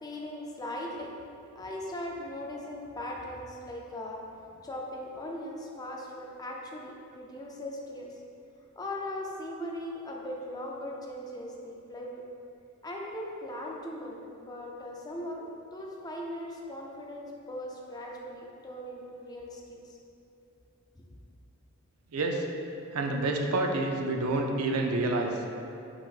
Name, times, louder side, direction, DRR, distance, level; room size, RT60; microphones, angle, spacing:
voice 1, 0.0-1.1 1.5-4.2 4.6-8.2 8.8-12.2 12.8-20.0 20.9-21.0, left 1 dB, 20° left, -1 dB, 0.4 m, -39 dB
voice 2, 22.1-22.5 22.9-25.4, right 2 dB, 80° right, 3 dB, 0.4 m, -28 dB
5.7 x 3.4 x 2.4 m, 2.8 s
head